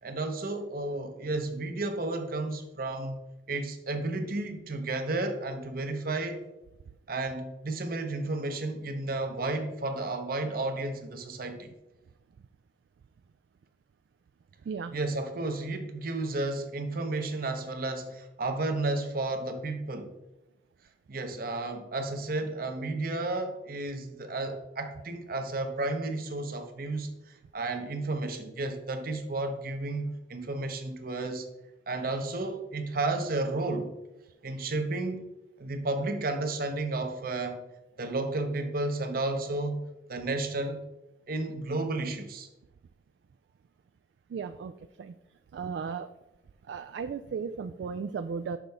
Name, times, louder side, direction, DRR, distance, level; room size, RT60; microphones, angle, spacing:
voice 1, 0.0-3.2 3.5-6.4 7.1-11.7 14.9-20.1 21.1-27.1 27.5-31.5 31.9-33.9 34.4-35.2 35.6-37.6 38.0-39.8 40.1-40.8 41.3-42.5, right 2 dB, 55° right, 6 dB, 0.9 m, -32 dB
voice 2, 44.3-44.7 45.0-45.1 45.5-46.1 46.7-48.6, right 5 dB, 70° right, 9 dB, 0.3 m, -35 dB
6.6 x 6.0 x 3.5 m, 0.95 s
head